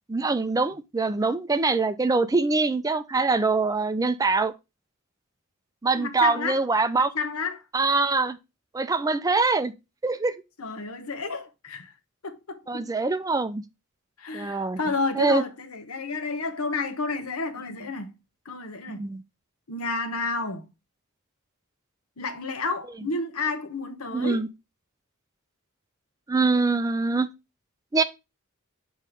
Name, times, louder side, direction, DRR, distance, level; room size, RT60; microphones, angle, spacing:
voice 1, 0.1-4.5 5.8-7.1 7.7-8.4 8.7-9.7 10.0-10.4 12.7-13.6 14.3-14.8 15.1-15.4 19.0-19.2 24.1-24.5 26.3-27.3 27.9-28.0, right 3 dB, 15° right, 0.4 m, -24 dB
voice 2, 5.9-6.6 7.0-7.6 10.6-11.9 12.2-12.9 14.2-18.1 18.4-19.1 19.7-20.7 22.2-24.4, left 3 dB, 80° left, 1.1 m, -31 dB
7.5 x 3.1 x 5.0 m
head